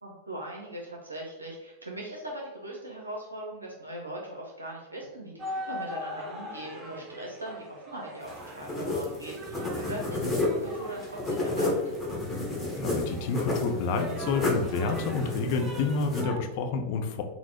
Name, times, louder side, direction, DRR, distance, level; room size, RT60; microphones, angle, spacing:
voice 1, 0.0-12.0, right 1 dB, 80° right, -2 dB, 0.6 m, -40 dB
sound 1, 5.4-16.4, equal, 25° right, 0.7 m, -42 dB
sound 2, 8.2-16.2, left 2 dB, 5° left, 1.1 m, -31 dB
voice 2, 12.8-17.2, left 4 dB, 45° left, 5 dB, 0.5 m, -29 dB
4.0 x 2.0 x 4.2 m, 1.1 s
figure-of-eight pair, 90°, 0 cm